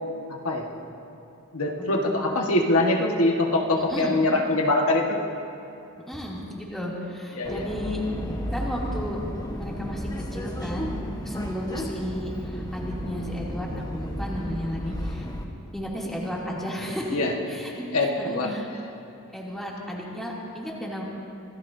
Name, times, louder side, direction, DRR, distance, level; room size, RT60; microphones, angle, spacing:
voice 1, 1.5-5.2 7.3-7.6 17.1-17.3 17.9-18.5, left 2 dB, 70° left, 0 dB, 1.5 m, -23 dB
voice 2, 3.8-4.2 6.1-8.0 8.5-9.2 9.5-13.7 13.9-15.3 15.7-17.2 17.5-18.7 19.3-21.0, equal, ahead, -6 dB, 2.7 m, -33 dB
Subway metro underground, 7.4-15.4, equal, 15° left, 1.2 m, -33 dB
26.0 x 17.5 x 2.7 m, 2.9 s
head